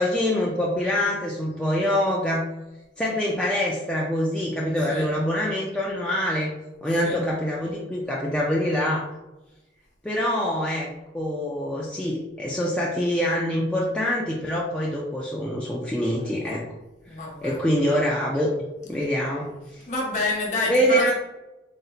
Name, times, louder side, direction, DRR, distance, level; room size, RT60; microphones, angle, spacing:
voice 1, 0.0-2.4 3.0-6.5 6.8-9.0 10.0-16.6 17.4-18.5 18.9-19.8 20.7-21.1, equal, 5° left, -4 dB, 0.4 m, -25 dB
voice 2, 17.1-17.6 19.8-21.1, left 2 dB, 40° left, -2 dB, 1.0 m, -28 dB
4.0 x 2.1 x 3.9 m, 1.0 s
head